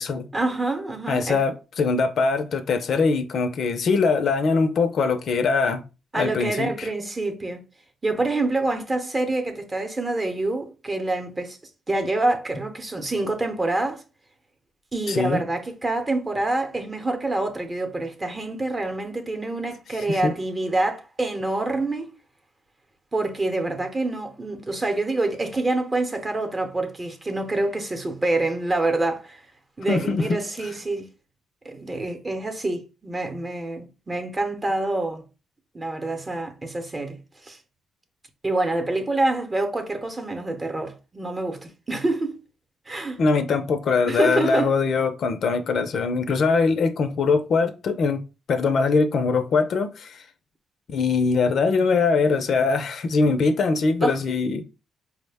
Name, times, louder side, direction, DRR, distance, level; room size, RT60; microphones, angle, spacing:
voice 1, 0.3-1.4 6.1-7.6 8.0-11.6 11.9-14.0 14.9-22.1 23.1-29.4 29.8-31.1 31.6-35.3 35.7-37.2 37.4-37.6 38.4-42.4 42.9-43.2 44.1-44.7 53.3-53.4 54.0-54.1, right 2 dB, 25° right, 0.8 m, -26 dB
voice 2, 1.1-5.8 6.1-6.9 15.1-15.4 20.1-20.3 29.9-30.4 43.2-50.2 50.9-54.6, left 4 dB, 60° left, 0.5 m, -22 dB
4.6 x 2.1 x 3.4 m
cardioid pair, 95°, 0 cm